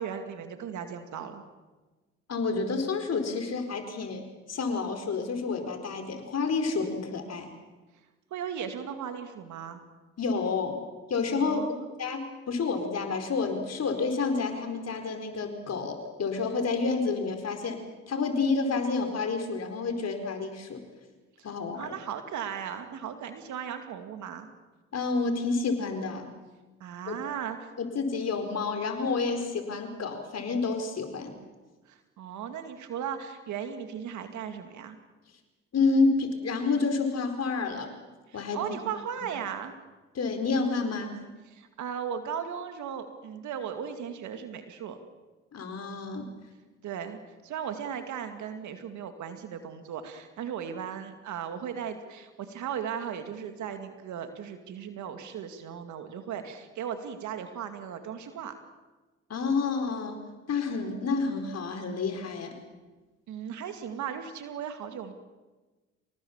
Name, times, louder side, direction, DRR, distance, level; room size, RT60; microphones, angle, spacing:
voice 1, 0.0-1.4 8.3-9.8 11.4-11.9 21.7-24.5 26.8-27.7 31.9-35.0 38.3-39.7 41.5-45.0 46.8-47.2 47.4-58.6 63.3-65.1, right 8 dB, 75° right, 8 dB, 2.2 m, -37 dB
voice 2, 2.3-7.5 10.2-10.8 11.1-11.6 12.0-17.8 18.1-20.8 21.4-21.9 24.9-26.3 27.1-27.2 27.8-31.3 35.7-37.9 38.3-38.8 40.1-41.1 45.5-46.3 59.3-60.2 60.5-62.6, left 4 dB, 55° left, 6 dB, 4.5 m, -29 dB
27.0 x 18.5 x 7.3 m, 1.2 s
supercardioid pair, 55°, 30 cm